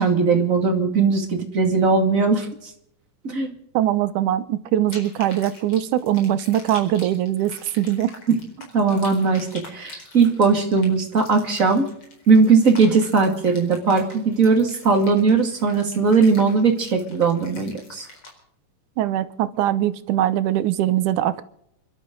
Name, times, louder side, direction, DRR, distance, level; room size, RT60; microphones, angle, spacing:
voice 1, 0.0-2.5 3.2-3.5 8.3-8.4 8.7-11.9 12.3-18.1, right 4 dB, 30° right, 2.3 m, -19 dB
voice 2, 3.7-8.1 19.0-21.4, right 12 dB, 90° right, 2.4 m, -22 dB
sound 1, 4.9-18.3, left 2 dB, 45° left, 5.2 m, -44 dB
29.0 x 12.5 x 3.9 m
omnidirectional pair, 3.5 m